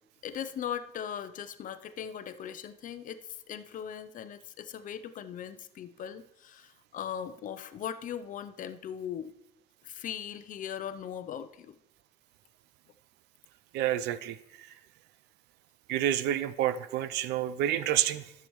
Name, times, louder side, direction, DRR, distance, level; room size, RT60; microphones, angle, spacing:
voice 1, 0.2-3.2 3.5-9.3 9.8-11.8, left 9 dB, 50° left, 11 dB, 0.6 m, -39 dB
voice 2, 13.7-14.7 15.9-18.3, right 12 dB, 85° right, 15 dB, 0.5 m, -29 dB
13.0 x 6.8 x 3.1 m, 0.82 s
cardioid pair, 110°, 17 cm